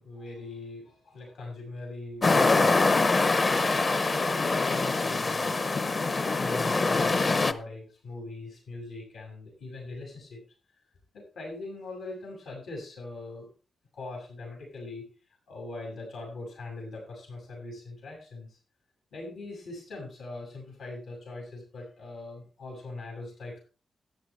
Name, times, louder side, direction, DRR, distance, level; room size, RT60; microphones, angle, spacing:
voice 1, 0.0-3.1 3.6-5.6 6.3-10.4 11.1-13.5 13.9-15.1 15.5-18.6 19.1-23.6, left 2 dB, 85° left, 0 dB, 6.7 m, -41 dB
sound 1, 2.2-7.5, left 3 dB, 35° left, 0.8 m, -24 dB
13.5 x 11.5 x 3.4 m, 0.36 s
wide cardioid pair, 130°, 0 cm